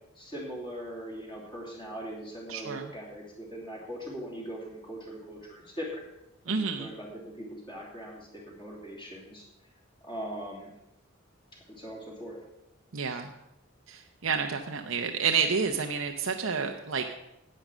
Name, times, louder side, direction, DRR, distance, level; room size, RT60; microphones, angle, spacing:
voice 1, 0.1-6.0 6.5-9.4 10.0-10.7 11.7-12.4, equal, 25° left, -4 dB, 3.0 m, -40 dB
voice 2, 2.5-2.9 6.5-6.9 12.9-13.3 13.9-17.1, right 5 dB, 80° right, 4 dB, 0.8 m, -29 dB
10.5 x 8.8 x 6.1 m, 0.88 s
head